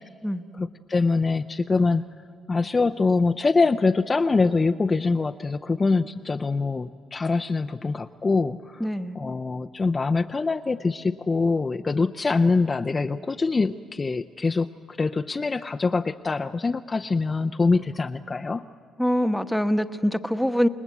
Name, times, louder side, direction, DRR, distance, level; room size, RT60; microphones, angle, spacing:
voice 1, 0.6-2.0 2.5-8.8 9.2-18.7, left 3 dB, 30° left, 7 dB, 0.6 m, -24 dB
voice 2, 8.8-9.2 19.0-20.7, equal, ahead, 8 dB, 1.1 m, -24 dB
28.5 x 19.5 x 8.4 m, 2.1 s
cardioid pair, 90°, 0 cm